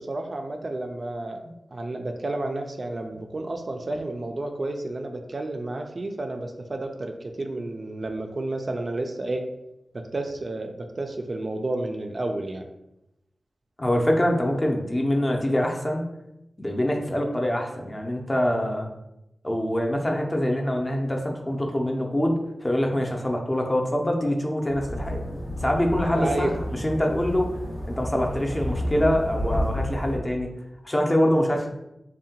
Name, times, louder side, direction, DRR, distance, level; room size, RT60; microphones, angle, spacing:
voice 1, 0.0-1.4 1.7-9.4 9.9-12.7 26.1-26.5, right 2 dB, 50° right, 4 dB, 0.3 m, -31 dB
voice 2, 13.8-16.0 16.6-18.9 19.4-25.2 25.6-27.5 27.9-30.5 30.8-31.7, equal, 25° left, 1 dB, 0.5 m, -24 dB
sound 1, 24.7-30.2, equal, 90° left, 0.9 m, -31 dB
2.7 x 2.1 x 2.8 m, 0.86 s
cardioid pair, 55°, 0 cm